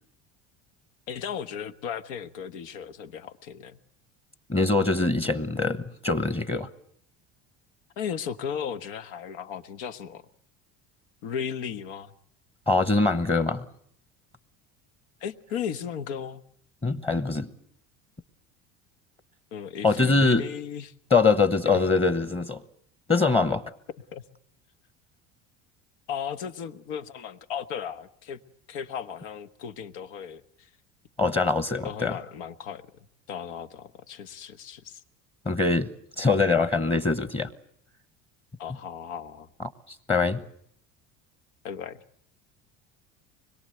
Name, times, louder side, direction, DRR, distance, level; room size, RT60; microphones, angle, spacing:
voice 1, 1.1-3.8 8.0-10.2 11.2-12.1 15.2-16.4 19.5-20.9 21.7-21.8 24.1-24.2 26.1-28.4 28.7-30.7 31.8-32.8 33.3-35.0 38.6-39.5 41.6-42.0, left 7 dB, 85° left, 1.4 m, -35 dB
voice 2, 4.5-6.7 12.7-13.6 16.8-17.5 19.8-20.4 21.1-22.6 23.1-23.6 31.2-32.2 35.4-35.9 36.2-37.5 40.1-40.4, left 3 dB, 15° left, 1.1 m, -23 dB
25.0 x 22.0 x 7.9 m
cardioid pair, 130°, 33 cm